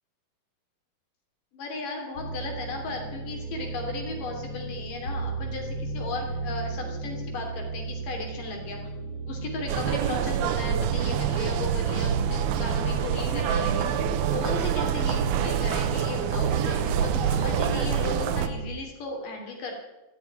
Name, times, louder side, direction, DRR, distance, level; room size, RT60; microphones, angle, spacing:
voice 1, 1.5-8.8 9.3-19.7, left 3 dB, 60° left, 2 dB, 4.6 m, -36 dB
sound 1, 2.1-18.8, right 3 dB, 20° left, 2.9 m, -34 dB
sound 2, 9.7-18.5, right 9 dB, 85° right, 2.9 m, -26 dB
14.5 x 10.5 x 9.4 m, 1.0 s
omnidirectional pair, 4.3 m